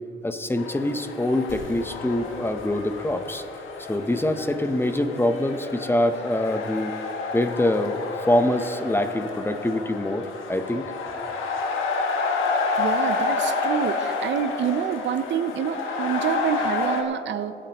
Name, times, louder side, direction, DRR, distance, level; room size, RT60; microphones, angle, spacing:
voice 1, 0.2-3.4 3.9-7.0 7.3-10.9, left 1 dB, 10° left, 8 dB, 0.8 m, -24 dB
sound 1, 0.6-17.0, left 4 dB, 85° left, 1.4 m, -30 dB
sound 2, 1.5-6.6, left 2 dB, 70° left, 1.7 m, -49 dB
voice 2, 12.8-17.6, right 8 dB, 65° right, 11 dB, 0.6 m, -27 dB
21.5 x 8.9 x 2.9 m, 2.7 s
cardioid pair, 90°, 20 cm